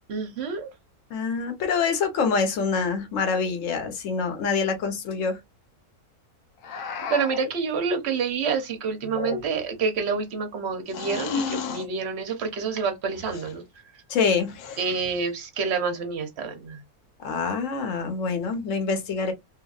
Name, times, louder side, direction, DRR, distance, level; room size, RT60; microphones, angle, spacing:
voice 1, 0.1-0.7 7.1-13.6 14.8-16.8, right 5 dB, 55° right, 0.8 m, -28 dB
voice 2, 1.1-5.4 14.1-14.5 17.2-19.3, left 5 dB, 60° left, 1.1 m, -25 dB
sound 1, 6.6-7.5 9.0-9.8 10.9-11.9 13.1-13.6 14.5-15.2, left 5 dB, 85° left, 1.2 m, -33 dB
2.9 x 2.5 x 2.3 m
omnidirectional pair, 1.6 m